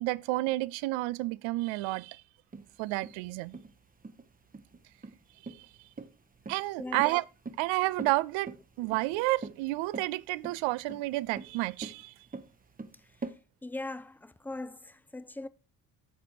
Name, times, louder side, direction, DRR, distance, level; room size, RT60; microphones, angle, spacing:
voice 1, 0.0-2.2 2.8-3.6 5.6-5.7 6.5-7.2 7.6-12.1, right 20 dB, 70° right, 0.5 m, -30 dB
sound 1, 2.5-13.4, right 3 dB, 20° right, 0.9 m, -44 dB
voice 2, 13.6-15.5, left 2 dB, 5° left, 0.6 m, -40 dB
13.5 x 5.0 x 2.8 m
hypercardioid pair, 45°, 48 cm